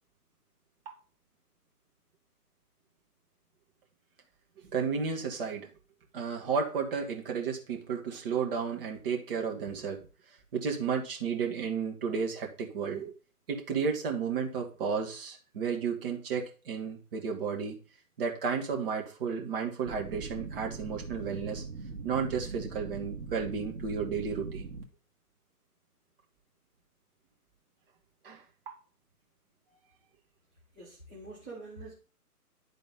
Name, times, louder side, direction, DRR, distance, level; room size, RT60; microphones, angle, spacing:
voice 1, 4.7-5.7 6.1-10.1 10.5-13.1 13.5-17.8 18.2-21.6 22.0-24.7 28.2-28.4, right 6 dB, 35° right, 1 dB, 1.6 m, -32 dB
sound 1, 19.9-24.8, right 4 dB, 65° right, 1.9 m, -41 dB
voice 2, 30.7-31.9, right 2 dB, 5° right, -12 dB, 0.5 m, -45 dB
11.0 x 3.8 x 3.6 m, 0.35 s
figure-of-eight pair, 140°, 47 cm